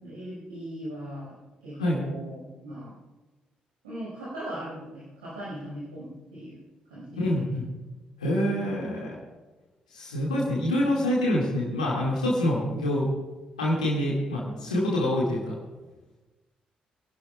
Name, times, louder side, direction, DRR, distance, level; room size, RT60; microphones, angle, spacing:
voice 1, 0.0-3.0 3.8-6.6 6.9-7.5 8.4-9.2, right 1 dB, 80° right, -8 dB, 5.2 m, -39 dB
voice 2, 7.2-7.6 8.2-9.1 9.9-13.1 13.6-15.5, left 1 dB, 85° left, -5 dB, 2.1 m, -26 dB
26.0 x 11.5 x 2.3 m, 1.2 s
figure-of-eight pair, 40°, 4 cm